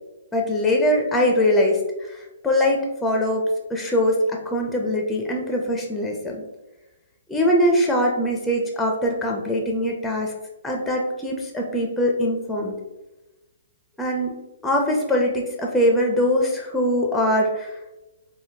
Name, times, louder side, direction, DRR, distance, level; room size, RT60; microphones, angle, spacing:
voice 1, 0.3-1.8 2.1-6.4 7.3-10.3 10.6-12.7 14.0-17.8, left 1 dB, 5° left, 1 dB, 0.4 m, -22 dB
3.5 x 2.1 x 2.7 m, 1.0 s
hypercardioid pair, 140°, 0 cm